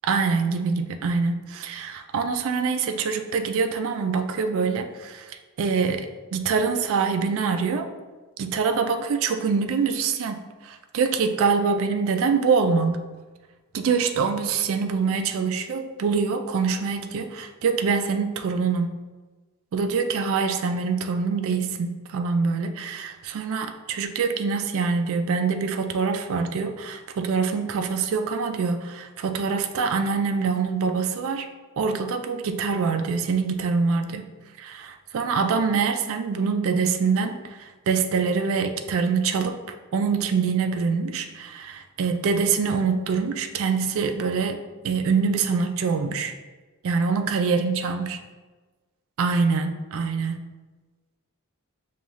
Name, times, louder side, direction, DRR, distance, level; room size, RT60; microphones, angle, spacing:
voice 1, 0.0-7.9 8.4-13.0 13.7-18.9 19.7-31.5 31.8-34.3 34.6-46.3 46.8-48.2 49.2-50.4, right 5 dB, 60° right, 6 dB, 0.3 m, -25 dB
5.3 x 2.3 x 3.0 m, 1.3 s
head